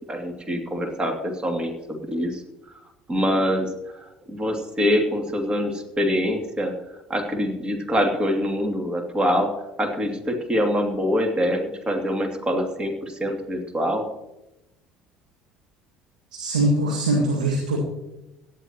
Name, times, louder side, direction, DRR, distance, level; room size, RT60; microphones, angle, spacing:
voice 1, 0.1-2.4 3.1-3.7 4.3-6.7 7.1-14.1, equal, 25° right, 3 dB, 2.6 m, -24 dB
voice 2, 16.3-17.8, right 1 dB, 85° right, -1 dB, 1.7 m, -22 dB
17.5 x 11.0 x 3.0 m, 0.94 s
hypercardioid pair, 60°, 4 cm